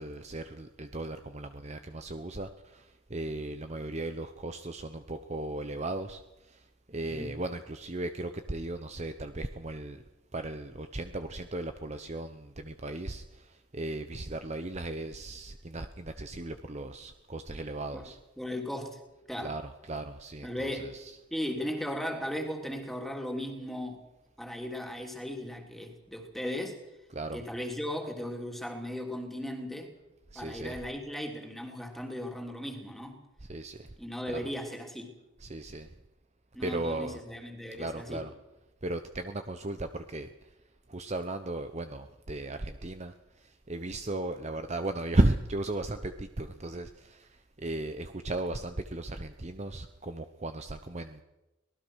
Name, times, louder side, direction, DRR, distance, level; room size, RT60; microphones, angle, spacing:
voice 1, 0.0-10.0 10.3-18.2 19.4-21.2 27.1-27.4 30.3-30.8 33.5-33.9 34.3-34.4 35.4-35.9 36.6-37.2 37.7-38.3 38.8-40.3 40.9-51.2, right 2 dB, 35° right, 8 dB, 0.9 m, -35 dB
voice 2, 7.0-7.4 17.9-18.1 18.4-19.0 19.3-19.6 20.4-21.0 21.3-24.1 24.4-26.8 27.3-29.9 30.3-33.2 34.0-35.2 36.5-38.2, left 1 dB, ahead, 2 dB, 3.2 m, -37 dB
24.5 x 19.0 x 6.4 m, 0.98 s
head